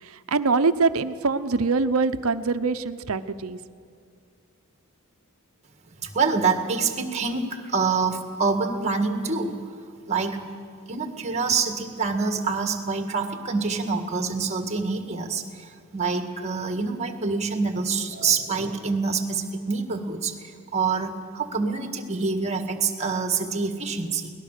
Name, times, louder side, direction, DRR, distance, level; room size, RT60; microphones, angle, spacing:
voice 1, 0.0-3.6, right 4 dB, 70° right, 11 dB, 0.7 m, -24 dB
voice 2, 6.0-9.6 10.0-10.4 10.9-24.3, right 4 dB, 30° right, 6 dB, 1.8 m, -26 dB
22.5 x 18.5 x 6.6 m, 2.3 s
head